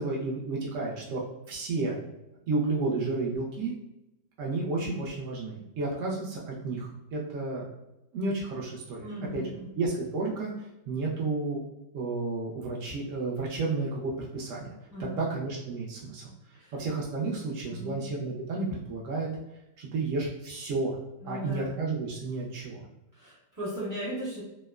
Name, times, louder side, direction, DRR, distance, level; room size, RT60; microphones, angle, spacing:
voice 1, 0.0-2.0 2.5-3.7 4.4-7.6 8.1-9.1 9.3-9.5 9.8-10.5 10.9-11.6 11.9-14.7 15.0-16.3 16.7-19.3 19.8-21.0 21.2-22.8, right 3 dB, 75° right, -4 dB, 0.7 m, -31 dB
voice 2, 9.0-9.8 14.9-15.3 16.5-16.7 17.7-18.0 21.2-21.8 23.1-24.4, equal, 30° right, -9 dB, 0.4 m, -38 dB
2.8 x 2.1 x 2.2 m, 0.90 s
omnidirectional pair, 1.9 m